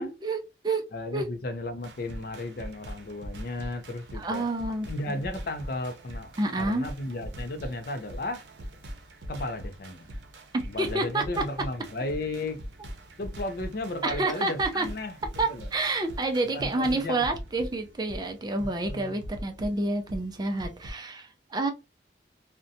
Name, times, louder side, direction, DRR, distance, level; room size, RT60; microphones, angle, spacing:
voice 1, 0.0-0.9 1.1-1.3 4.1-5.2 6.4-6.9 10.5-11.4 14.0-14.9 15.4-21.7, right 2 dB, 25° right, 0.4 m, -29 dB
voice 2, 0.9-4.5 4.9-8.4 9.3-10.1 10.7-12.6 13.2-15.2 15.5-15.7 16.5-17.3 18.6-19.2, left 2 dB, 55° left, 0.4 m, -34 dB
sound 1, 1.8-20.9, equal, 80° right, 0.6 m, -42 dB
2.6 x 2.1 x 2.5 m
head